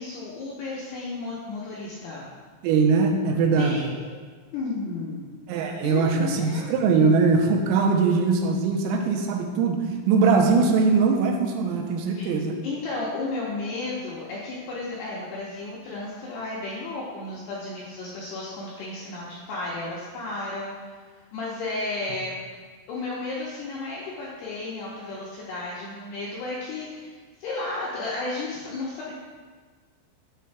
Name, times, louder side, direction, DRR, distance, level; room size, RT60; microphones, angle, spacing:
voice 1, 0.0-2.3 3.6-4.2 4.5-5.2 5.8-6.7 12.1-12.3 12.6-20.9 21.3-22.4 22.9-27.1 27.4-29.1, left 3 dB, 80° left, -6 dB, 2.4 m, -33 dB
voice 2, 2.6-3.9 5.5-9.8 10.1-12.6, right 4 dB, 85° right, 3 dB, 3.3 m, -21 dB
9.0 x 8.2 x 2.3 m, 1.5 s
omnidirectional pair, 5.9 m